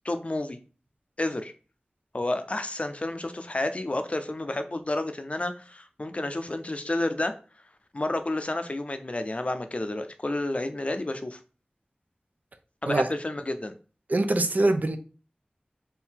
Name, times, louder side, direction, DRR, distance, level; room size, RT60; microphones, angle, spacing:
voice 1, 0.0-0.6 1.2-1.5 2.1-7.3 7.9-11.4 12.8-13.8, left 2 dB, 45° left, 0.5 m, -30 dB
voice 2, 14.1-15.0, right 2 dB, 60° right, 0.6 m, -23 dB
4.6 x 2.7 x 3.6 m
wide cardioid pair, 60°, 3 cm